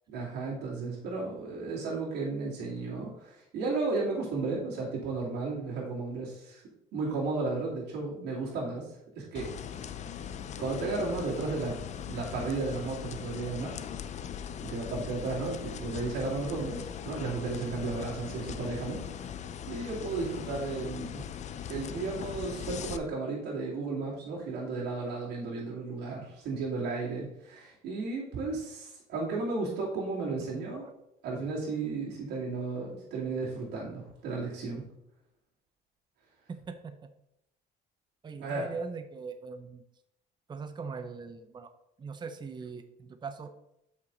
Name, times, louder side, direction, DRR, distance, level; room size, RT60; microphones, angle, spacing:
voice 1, 0.1-6.6 6.9-8.9 9.2-9.8 10.6-11.8 12.0-13.7 14.6-19.3 19.7-21.2 21.7-30.8 31.2-34.8 38.4-38.7, right 3 dB, 80° right, -5 dB, 2.8 m, -34 dB
sound 1, 9.3-23.0, left 8 dB, 45° left, 0.5 m, -40 dB
voice 2, 36.5-37.1 38.2-39.8 40.5-41.7 42.0-43.5, right 5 dB, 25° right, 8 dB, 0.6 m, -41 dB
7.5 x 5.9 x 4.0 m, 0.80 s
cardioid pair, 110°, 17 cm